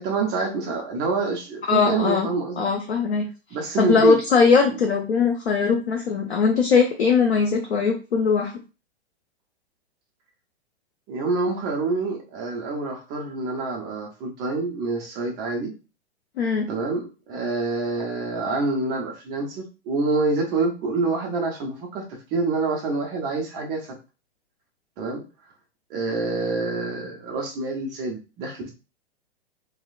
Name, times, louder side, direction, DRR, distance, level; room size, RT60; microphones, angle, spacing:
voice 1, 0.0-2.6 3.5-4.2 4.7-4.8 11.1-15.7 16.7-24.0 25.0-25.3 25.9-28.7, right 3 dB, 15° right, 1 dB, 0.3 m, -27 dB
voice 2, 1.7-2.3 2.6-3.3 3.8-8.5 16.4-16.7, left 5 dB, 70° left, 2 dB, 0.6 m, -20 dB
2.8 x 2.0 x 2.4 m, 0.31 s
figure-of-eight pair, 110°, 33 cm